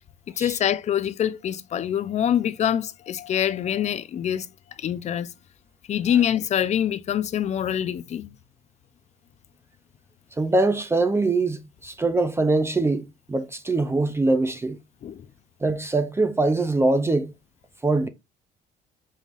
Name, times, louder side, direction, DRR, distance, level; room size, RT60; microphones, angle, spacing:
voice 1, 0.4-4.5 4.8-5.3 5.9-8.4 15.0-15.3, left 10 dB, 40° left, 0.4 m, -25 dB
voice 2, 10.4-14.8 15.6-17.3 17.8-18.1, right 2 dB, 15° right, 0.4 m, -23 dB
5.4 x 3.2 x 2.5 m
cardioid pair, 110°, 17 cm